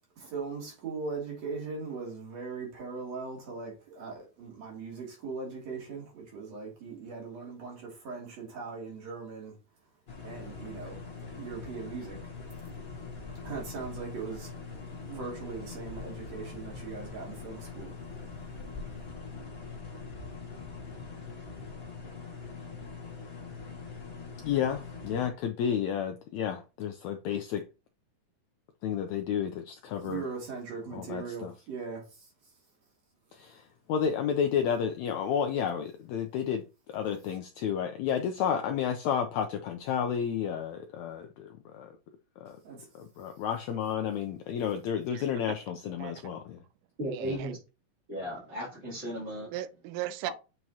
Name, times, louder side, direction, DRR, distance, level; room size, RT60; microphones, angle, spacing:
voice 1, 0.2-9.5 10.2-11.1 11.4-12.2 13.4-14.6 14.9-17.9 30.0-32.2 42.6-42.9, right 4 dB, 50° right, 3.4 m, -39 dB
sound 1, 10.1-25.3, left 4 dB, 40° left, 0.8 m, -43 dB
voice 2, 24.4-27.7 28.8-30.3 30.9-31.5 33.3-42.0 42.4-42.6 42.9-46.6 47.2-47.4, left 8 dB, 85° left, 1.6 m, -31 dB
voice 3, 45.1-45.6 46.0-46.2 47.0-47.5 49.5-50.3, right 13 dB, 80° right, 2.0 m, -37 dB
voice 4, 47.0-47.6 48.1-49.5 50.3-50.4, equal, 25° right, 2.8 m, -35 dB
7.5 x 4.7 x 2.8 m
omnidirectional pair, 3.9 m